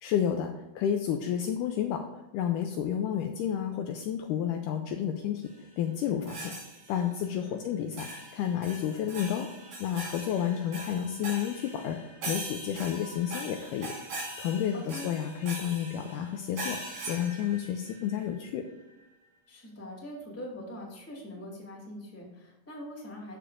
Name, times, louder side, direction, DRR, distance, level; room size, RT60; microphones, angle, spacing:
voice 1, 0.0-5.5 5.8-6.5 6.9-8.1 8.3-9.5 9.8-12.0 12.3-13.9 14.4-16.8 17.1-18.7, left 9 dB, 85° left, 5 dB, 1.8 m, -31 dB
sound 1, 6.3-7.1 8.0-18.2, right 2 dB, 70° right, 5.0 m, -41 dB
voice 2, 19.5-23.4, left 1 dB, 5° left, -3 dB, 1.7 m, -43 dB
13.0 x 6.9 x 2.5 m, 0.99 s
omnidirectional pair, 4.3 m